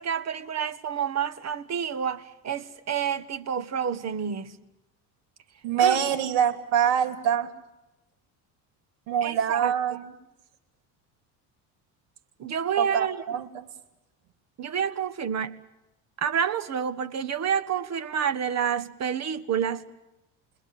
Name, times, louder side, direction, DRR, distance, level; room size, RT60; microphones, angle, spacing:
voice 1, 0.0-4.5 5.8-6.0 9.2-10.0 12.4-13.2 14.6-15.5 16.2-19.8, right 8 dB, 40° right, 1.5 m, -28 dB
voice 2, 5.6-7.5 9.1-10.1 12.8-13.7, right 8 dB, 85° right, 3.0 m, -25 dB
29.0 x 21.0 x 7.6 m
cardioid pair, 115°, 42 cm